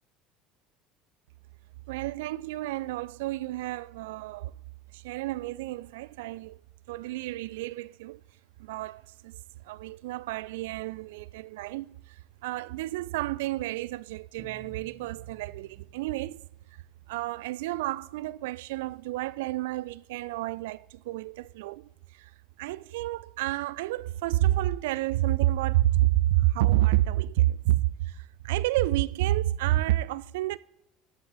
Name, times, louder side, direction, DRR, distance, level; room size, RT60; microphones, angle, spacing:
voice 1, 1.9-4.5 4.9-6.6 6.9-8.2 8.6-9.4 9.6-16.4 17.1-22.3 22.6-30.6, right 16 dB, 70° right, 0.4 m, -29 dB
Bowed string instrument, 14.4-17.2, right 1 dB, 15° right, 2.1 m, -55 dB
14.5 x 12.0 x 4.1 m
figure-of-eight pair, 65°, 0 cm